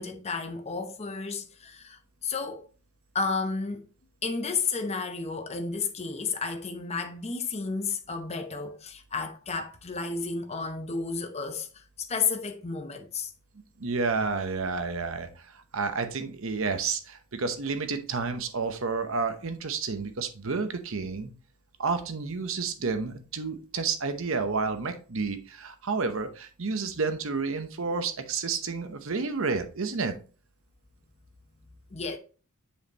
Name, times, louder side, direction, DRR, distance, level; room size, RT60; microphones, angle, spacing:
voice 1, 0.0-2.7 3.1-3.9 4.2-11.7 12.0-13.3 31.9-32.2, left 4 dB, 30° left, 0.7 m, -32 dB
voice 2, 13.8-21.3 21.8-30.2, right 4 dB, 60° right, 0.9 m, -30 dB
7.0 x 5.4 x 2.9 m
head